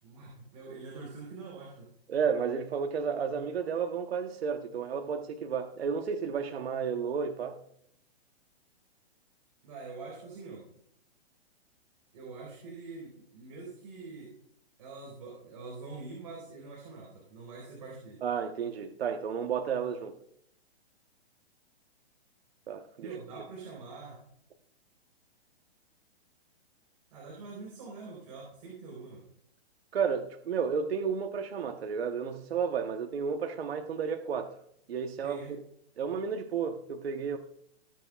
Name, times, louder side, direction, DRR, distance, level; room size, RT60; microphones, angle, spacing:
voice 1, 0.0-1.9 9.6-10.6 12.1-14.3 14.8-18.2 23.0-24.2 27.1-29.2 35.2-35.5, right 4 dB, 35° right, 4.1 m, -45 dB
voice 2, 2.1-7.6 18.2-20.1 22.7-23.1 29.9-34.5 34.9-35.4 36.0-37.4, right 6 dB, 70° right, 1.2 m, -32 dB
19.5 x 8.5 x 2.4 m
hypercardioid pair, 175°, 32 cm